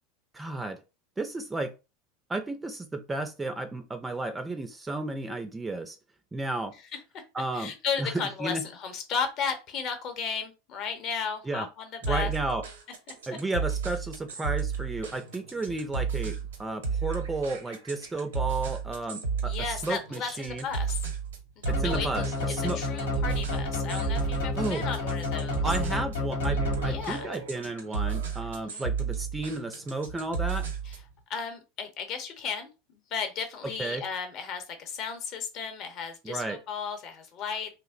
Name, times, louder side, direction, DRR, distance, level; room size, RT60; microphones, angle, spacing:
voice 1, 0.3-0.8 1.2-1.7 2.3-6.0 6.3-6.8 7.3-7.7 8.0-8.1 8.4-8.6 11.4-11.7 12.0-12.6 13.3-20.7 21.7-22.8 24.5-24.9 25.6-30.7 33.8-34.0 36.2-36.6, right 2 dB, 15° right, 7 dB, 0.3 m, -33 dB
voice 2, 7.5-12.3 19.5-21.0 21.8-22.3 22.7-25.7 26.9-27.3 28.7-28.8 30.9-31.0 31.3-37.7, left 6 dB, 50° left, 6 dB, 0.7 m, -34 dB
sound 1, 12.0-31.1, right 6 dB, 90° right, 0.7 m, -33 dB
sound 2, 21.7-27.4, left 3 dB, 85° left, 0.8 m, -31 dB
2.7 x 2.0 x 2.4 m, 0.28 s
hypercardioid pair, 95°, 0 cm